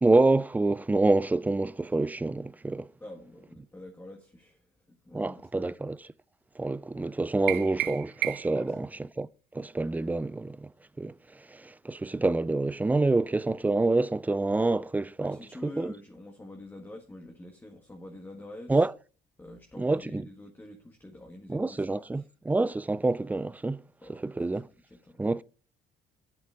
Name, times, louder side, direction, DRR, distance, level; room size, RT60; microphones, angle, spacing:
voice 1, 0.0-2.9 5.1-6.0 6.6-8.9 9.2-9.3 9.5-10.7 11.0-11.1 11.5-15.4 15.6-15.9 18.7-18.9 19.8-20.3 21.5-23.8 24.1-24.7 25.2-25.4, right 2 dB, 10° right, 0.4 m, -27 dB
voice 2, 3.0-5.8 8.5-8.9 15.2-18.9 19.4-22.3 24.0-25.2, left 1 dB, 10° left, 1.6 m, -47 dB
sound 1, 7.5-8.7, right 15 dB, 75° right, 0.6 m, -32 dB
8.5 x 7.6 x 5.0 m
cardioid pair, 110°, 17 cm